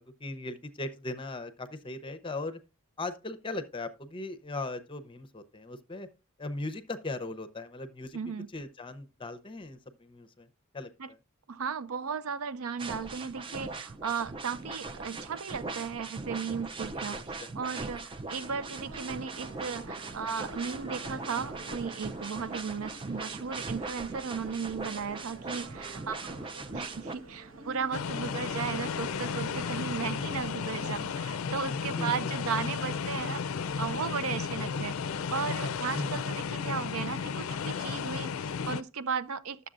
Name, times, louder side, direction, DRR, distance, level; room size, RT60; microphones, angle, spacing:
voice 1, 0.0-2.6 3.0-6.1 6.4-8.2 8.5-10.5 10.7-11.2 17.1-17.5 32.0-32.3 35.9-36.2, left 2 dB, 25° left, 0.6 m, -38 dB
voice 2, 8.1-8.5 11.0-11.1 11.5-33.4 33.8-35.0 35.3-39.7, right 6 dB, 90° right, 0.5 m, -36 dB
sound 1, 12.8-27.1, right 3 dB, 25° right, 0.4 m, -40 dB
sound 2, 18.3-31.1, right 2 dB, 65° right, 1.1 m, -48 dB
sound 3, 27.9-38.8, left 6 dB, 80° left, 0.4 m, -33 dB
11.5 x 6.9 x 2.5 m
head